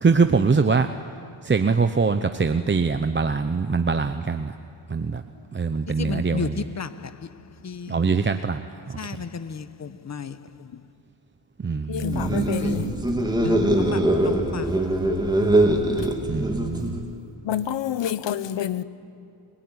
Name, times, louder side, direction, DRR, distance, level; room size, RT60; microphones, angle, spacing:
voice 1, 0.0-0.9 1.4-4.5 4.9-5.2 5.5-6.7 7.9-8.6 11.6-12.4 16.3-16.9, right 4 dB, 25° right, 0.9 m, -23 dB
voice 2, 6.0-7.1 7.6-8.2 9.0-10.4 12.0-12.9 13.4-14.7, left 6 dB, 35° left, 1.1 m, -33 dB
voice 3, 11.9-12.9 16.7-16.8 17.4-18.8, left 10 dB, 65° left, 1.3 m, -28 dB
sound 1, 12.0-17.1, right 1 dB, 10° right, 3.1 m, -22 dB
30.0 x 20.5 x 9.8 m
cardioid pair, 105°, 46 cm